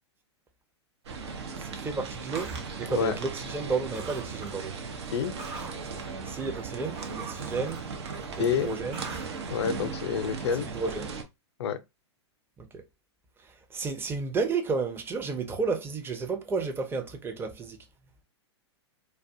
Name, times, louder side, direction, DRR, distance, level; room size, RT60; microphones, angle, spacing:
sound 1, 1.0-11.2, right 4 dB, 70° right, 0.6 m, -37 dB
voice 1, 1.6-4.8 6.2-7.8 8.4-9.0 10.7-11.2 12.6-12.8 13.4-17.8, right 4 dB, 15° right, 0.5 m, -32 dB
sound 2, 2.3-3.7 3.9-4.7 5.0-9.5, right 4 dB, 40° right, 0.9 m, -44 dB
voice 2, 8.4-8.7 9.5-10.7 11.6-11.8, left 7 dB, 70° left, 0.5 m, -28 dB
2.3 x 2.2 x 2.6 m
hypercardioid pair, 105°, 15 cm